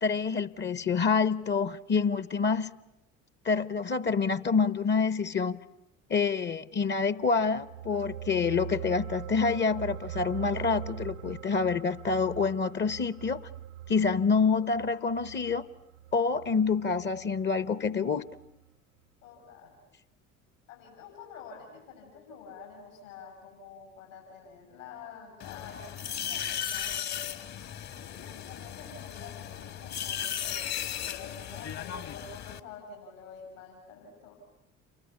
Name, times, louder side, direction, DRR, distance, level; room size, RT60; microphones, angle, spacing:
voice 1, 0.0-2.7 3.4-5.6 6.1-13.5 13.9-15.7 16.1-18.2, left 5 dB, 25° left, 1.0 m, -27 dB
sound 1, 7.4-18.0 18.3-18.5, right 11 dB, 75° right, 1.0 m, -42 dB
voice 2, 19.2-19.7 20.7-27.0 28.1-30.7 31.0-34.4, left 5 dB, 75° left, 7.1 m, -48 dB
sound 2, 25.4-32.6, left 9 dB, 40° left, 1.6 m, -36 dB
29.5 x 24.5 x 8.3 m
figure-of-eight pair, 60°, 39 cm